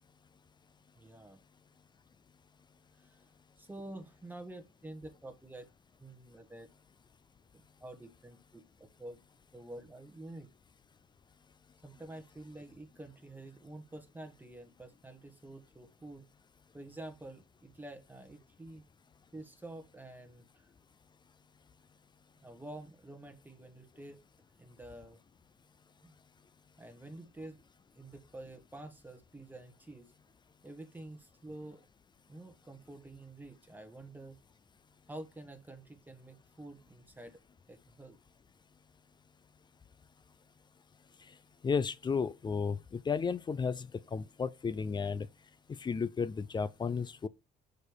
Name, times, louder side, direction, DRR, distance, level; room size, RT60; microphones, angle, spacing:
voice 1, 1.0-1.4 3.0-3.2 3.6-5.7 6.0-6.7 7.8-9.2 9.5-10.5 11.8-16.3 16.7-18.8 19.3-20.7 22.4-24.2 24.6-25.2 26.0-26.1 26.8-27.6 27.9-30.1 30.6-31.9 32.3-34.4 35.1-37.4 37.7-38.2, right 1 dB, 10° right, 1.4 m, -48 dB
voice 2, 41.6-45.3 45.8-47.3, left 5 dB, 25° left, 0.6 m, -33 dB
6.3 x 5.2 x 4.7 m
cardioid pair, 110°, 17 cm